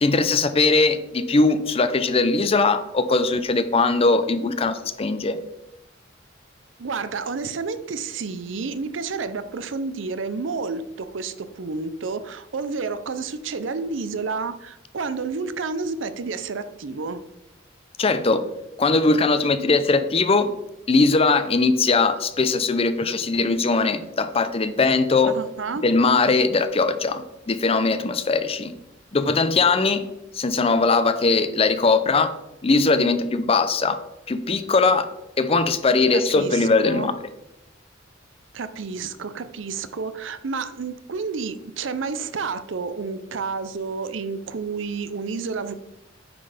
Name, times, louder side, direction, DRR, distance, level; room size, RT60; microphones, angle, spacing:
voice 1, 0.0-5.4 18.0-18.4 18.8-20.5 20.9-25.3 25.8-28.7 29.1-30.0 30.3-32.3 32.6-34.0 34.3-35.1 35.4-37.1, left 3 dB, 30° left, 11 dB, 0.5 m, -20 dB
voice 2, 6.8-17.2 25.3-25.9 36.1-37.1 38.5-45.7, right 4 dB, 75° right, 12 dB, 0.6 m, -30 dB
9.4 x 4.0 x 5.0 m, 0.90 s
head